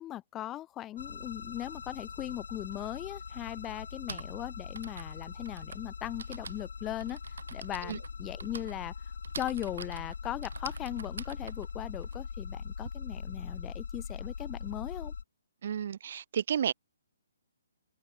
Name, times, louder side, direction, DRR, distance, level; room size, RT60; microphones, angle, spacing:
voice 1, 0.0-7.2 7.5-8.9 9.3-15.1, left 13 dB, 20° left, 0.9 m, -39 dB
sound 1, 1.0-15.2, left 5 dB, 70° left, 1.1 m, -41 dB
Typing, 2.7-2.8 3.8-12.9, right 5 dB, 75° right, 3.9 m, -46 dB
voice 2, 15.6-16.7, right 8 dB, 55° right, 0.7 m, -32 dB
hypercardioid pair, 145°, 0 cm